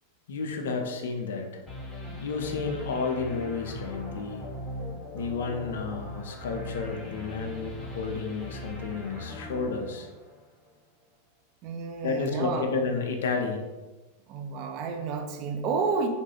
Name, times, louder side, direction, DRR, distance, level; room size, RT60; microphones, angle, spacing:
voice 1, 0.3-1.5 2.2-4.4 5.1-10.1 12.0-13.7, left 4 dB, 60° left, 3 dB, 0.4 m, -31 dB
sound 1, 1.7-10.7, left 1 dB, ahead, 0.9 m, -40 dB
voice 2, 11.6-12.7 14.3-16.1, right 5 dB, 40° right, 3 dB, 0.3 m, -30 dB
2.7 x 2.2 x 2.9 m, 1.2 s
figure-of-eight pair, 90°, 0 cm